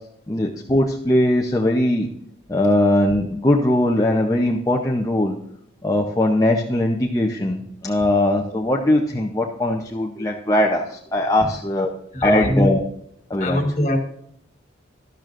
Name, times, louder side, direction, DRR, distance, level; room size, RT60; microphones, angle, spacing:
voice 1, 0.3-2.1 2.5-5.4 5.8-11.9 12.2-12.8 13.3-13.6, left 1 dB, 15° left, 0 dB, 0.7 m, -20 dB
voice 2, 12.1-12.7 13.4-14.0, left 1 dB, 35° left, 3 dB, 1.5 m, -22 dB
12.5 x 12.0 x 2.5 m, 0.73 s
head